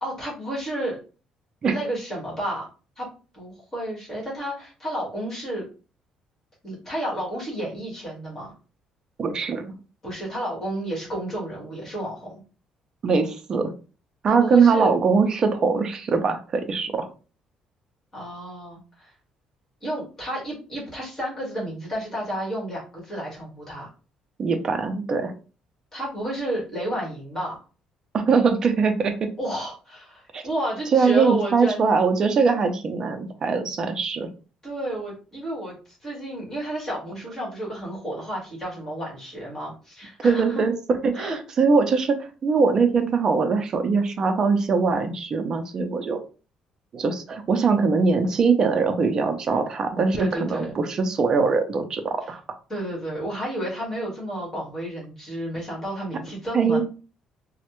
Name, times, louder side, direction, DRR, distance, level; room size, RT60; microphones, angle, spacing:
voice 1, 0.0-1.0 1.7-2.7 3.0-3.1 3.3-5.6 6.6-8.5 10.0-12.4 14.3-15.0 18.1-19.1 19.8-23.9 25.9-27.6 29.4-31.8 34.6-35.7 36.0-40.6 41.1-41.4 50.2-50.7 52.3-52.4 52.7-56.8, right 1 dB, 15° left, -4 dB, 1.5 m, -31 dB
voice 2, 9.2-9.7 13.0-13.7 14.2-17.1 24.4-25.3 28.1-29.1 30.3-30.4 30.9-34.3 40.2-40.7 41.0-46.2 46.9-52.4 56.5-56.8, right 5 dB, 30° right, 6 dB, 0.4 m, -22 dB
3.2 x 2.1 x 3.0 m, 0.35 s
cardioid pair, 175°, 2 cm